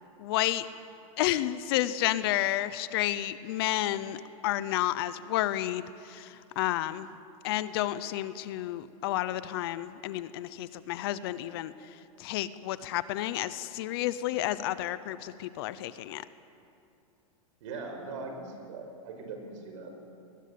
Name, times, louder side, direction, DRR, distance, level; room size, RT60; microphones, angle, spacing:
voice 1, 0.2-0.7 1.2-7.1 7.4-11.7 12.2-16.2, left 14 dB, 45° left, 15 dB, 0.7 m, -31 dB
voice 2, 17.6-20.0, right 3 dB, 60° right, 4 dB, 5.6 m, -40 dB
22.5 x 20.5 x 8.5 m, 2.6 s
supercardioid pair, 165°, 18 cm